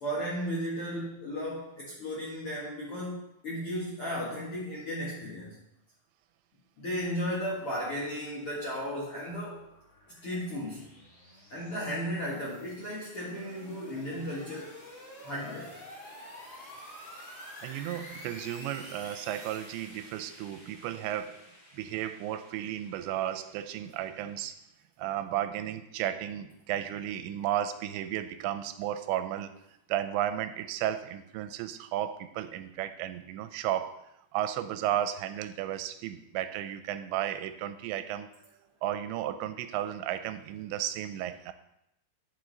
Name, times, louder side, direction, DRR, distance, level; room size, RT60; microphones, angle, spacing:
voice 1, 0.0-5.6 6.8-9.6 10.2-10.9 11.5-14.7 15.2-15.8, equal, 70° left, -6 dB, 1.3 m, -35 dB
sound 1, 8.9-24.5, equal, 40° left, 0.4 m, -50 dB
voice 2, 17.6-24.6 25.0-34.0 34.3-38.3 38.8-41.5, right 11 dB, 90° right, 10 dB, 2.8 m, -34 dB
9.4 x 6.9 x 3.9 m, 0.83 s
omnidirectional pair, 5.1 m